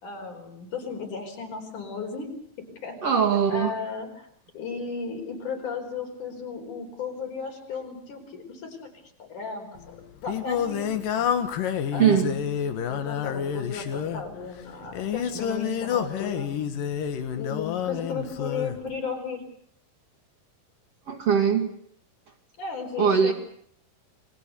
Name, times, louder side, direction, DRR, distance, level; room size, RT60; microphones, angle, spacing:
voice 1, 0.0-2.3 2.6-3.0 3.5-4.3 4.5-8.9 9.2-11.3 11.9-16.5 17.4-19.4 22.6-23.3, left 5 dB, 65° left, 2 dB, 6.0 m, -35 dB
voice 2, 3.0-3.8 12.0-12.3 21.1-21.7 23.0-23.3, right 7 dB, 50° right, 3 dB, 2.8 m, -21 dB
Singing, 9.8-18.8, left 8 dB, 80° left, 3.2 m, -29 dB
29.5 x 20.5 x 6.9 m, 0.68 s
omnidirectional pair, 3.9 m